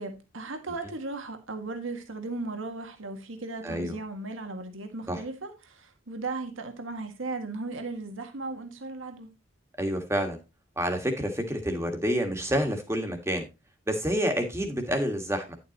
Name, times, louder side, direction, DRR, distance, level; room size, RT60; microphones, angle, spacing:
voice 1, 0.0-9.3, right 3 dB, 75° right, 1.7 m, -36 dB
voice 2, 3.6-3.9 5.1-5.2 9.8-10.4 10.8-13.5 13.9-15.6, equal, 15° right, 1.6 m, -28 dB
10.5 x 7.9 x 3.0 m
head